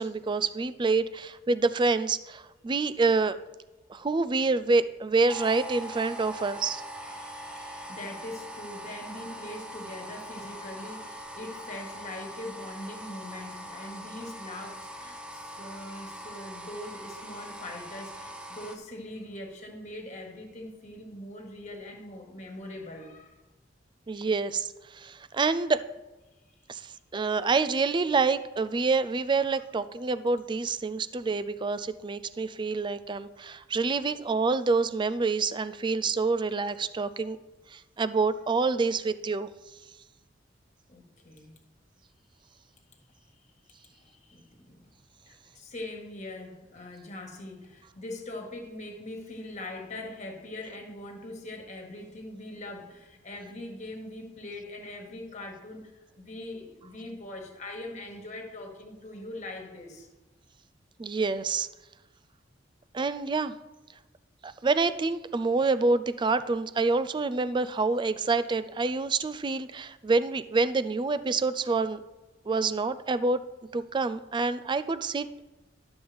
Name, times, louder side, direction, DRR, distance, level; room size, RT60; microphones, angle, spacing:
voice 1, 0.0-3.4 3.9-6.8 24.1-25.8 26.7-37.4 37.7-39.5 61.0-61.7 62.9-63.5 64.4-72.0 72.5-73.4 73.7-75.4, right 3 dB, 25° right, 14 dB, 0.4 m, -27 dB
sound 1, 5.3-18.8, equal, 5° right, 0.8 m, -42 dB
voice 2, 7.1-23.3 40.9-41.6 43.7-44.9 45.3-60.1, left 1 dB, 40° left, 2 dB, 1.6 m, -42 dB
12.0 x 7.1 x 3.4 m, 1.1 s
head